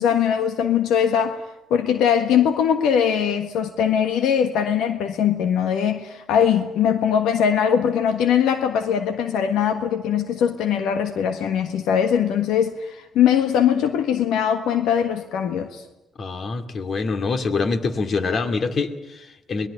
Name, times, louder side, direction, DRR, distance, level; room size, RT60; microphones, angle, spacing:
voice 1, 0.0-1.4 1.7-15.8, left 8 dB, 90° left, 1.5 m, -21 dB
voice 2, 16.2-19.7, left 4 dB, 50° left, 2.4 m, -25 dB
23.5 x 21.0 x 10.0 m
cardioid pair, 90°, 0 cm